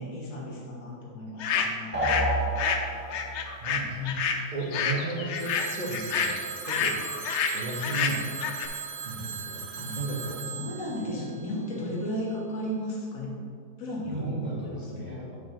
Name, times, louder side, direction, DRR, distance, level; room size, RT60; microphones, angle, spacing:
voice 1, 0.0-2.1 3.9-4.2 9.7-10.0 10.5-13.4 13.8-15.3, equal, 55° left, -4 dB, 1.6 m, -34 dB
sound 1, 1.4-2.3 2.6-8.7, left 6 dB, 80° left, 0.6 m, -29 dB
sound 2, 1.9-3.4, right 1 dB, 10° right, 0.5 m, -28 dB
voice 2, 3.6-4.0 4.5-7.0 7.5-8.6 9.0-10.5 14.0-15.4, right 2 dB, 30° right, -3 dB, 1.0 m, -34 dB
Telephone, 5.4-12.2, right 6 dB, 85° right, 1.3 m, -39 dB
8.6 x 6.4 x 3.0 m, 2.4 s
omnidirectional pair, 1.9 m